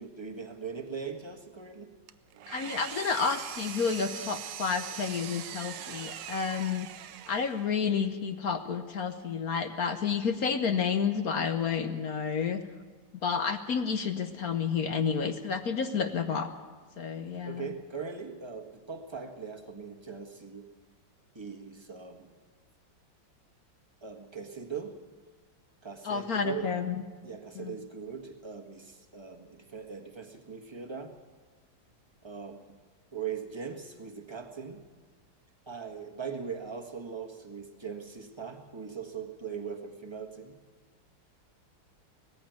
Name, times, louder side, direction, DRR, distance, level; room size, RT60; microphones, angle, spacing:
voice 1, 0.0-1.9 17.4-20.7 21.3-22.3 24.0-25.0 25.8-26.7 27.2-31.1 32.2-32.7 33.1-34.8 35.7-40.5, right 6 dB, 15° right, 3 dB, 1.3 m, -40 dB
Engine, 2.1-7.8, right 11 dB, 70° right, 1.4 m, -41 dB
voice 2, 2.5-6.9 7.3-12.6 13.2-16.5 17.0-17.7 26.0-27.0 27.5-27.8, left 6 dB, 55° left, 8 dB, 1.2 m, -30 dB
18.5 x 15.0 x 9.3 m, 1.4 s
omnidirectional pair, 2.1 m